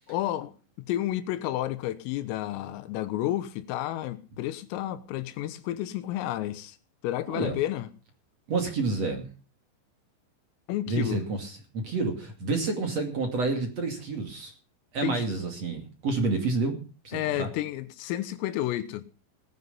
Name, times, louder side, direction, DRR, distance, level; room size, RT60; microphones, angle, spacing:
voice 1, 0.1-0.5 0.9-6.8 7.0-7.9 10.7-11.2 12.5-12.9 15.0-15.3 17.1-19.1, left 13 dB, 90° left, 3.8 m, -31 dB
voice 2, 8.5-9.3 10.9-14.5 14.9-16.8 17.0-17.5, right 3 dB, 40° right, 2.8 m, -29 dB
19.0 x 9.8 x 5.5 m
omnidirectional pair, 5.8 m